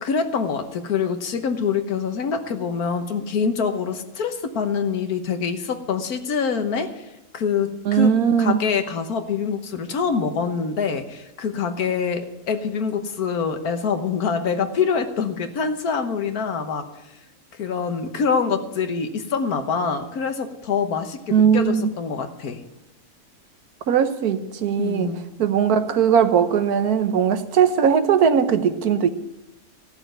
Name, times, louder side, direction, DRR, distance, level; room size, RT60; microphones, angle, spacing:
voice 1, 0.0-7.1 7.3-16.9 17.5-22.6 24.8-25.2, left 6 dB, 85° left, 7 dB, 1.6 m, -25 dB
voice 2, 7.9-8.6 21.3-21.9 23.9-25.1 25.4-29.1, right 7 dB, 90° right, 9 dB, 1.5 m, -19 dB
15.5 x 6.9 x 9.1 m, 0.95 s
omnidirectional pair, 1.5 m